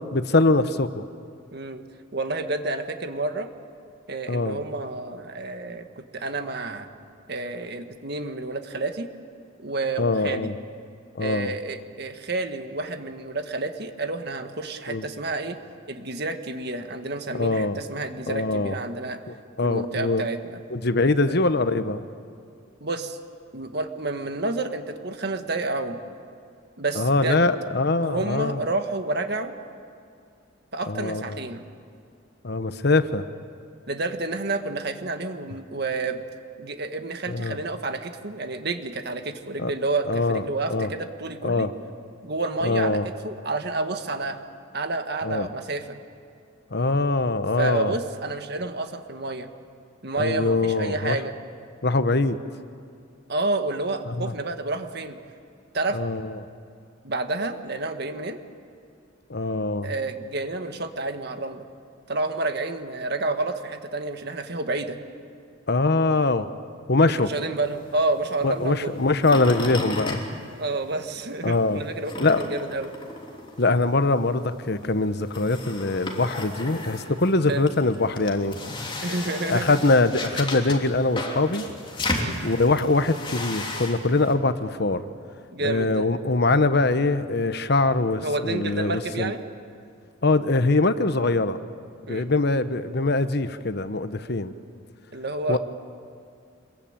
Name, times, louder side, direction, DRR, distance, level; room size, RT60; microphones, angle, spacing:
voice 1, 0.1-1.0 4.3-4.6 10.0-10.5 11.1-11.5 14.9-15.1 17.3-17.8 18.3-18.8 19.6-20.2 20.7-22.0 26.9-28.6 30.9-31.4 32.4-33.2 37.3-37.6 39.6-39.7 40.1-40.4 40.7-40.9 41.4-41.7 42.6-43.0 45.2-45.5 46.7-47.9 50.2-51.2 51.8-52.4 54.1-54.3 55.9-56.4 59.3-59.9 65.7-66.5 66.9-67.3 68.4-70.2 71.4-71.8 72.2-72.5 73.6-78.5 79.5-81.6 82.4-85.0 85.6-89.3 90.2-91.6 92.1-94.5 95.5-95.6, left 2 dB, 55° left, 11 dB, 1.0 m, -23 dB
voice 2, 1.5-1.8 2.1-3.5 4.1-6.9 7.3-9.1 9.6-10.5 11.2-15.6 15.9-19.2 19.6-20.6 22.8-23.2 23.5-26.0 26.8-27.5 28.0-29.5 30.7-31.6 33.9-36.2 36.6-41.7 42.2-44.4 44.7-46.0 47.6-49.5 50.0-51.3 53.3-55.2 55.7-56.0 57.0-58.4 59.8-61.7 62.1-65.0 67.3-69.0 70.6-72.9 77.5-77.7 79.0-79.8 82.1-82.4 85.5-86.1 88.2-89.4 92.1-92.3 95.1-95.6, right 2 dB, 55° right, 7 dB, 1.7 m, -29 dB
sound 1, 67.6-71.2 71.5-84.3, left 2 dB, 25° left, 3.2 m, -34 dB
26.0 x 22.5 x 8.9 m, 2.4 s
head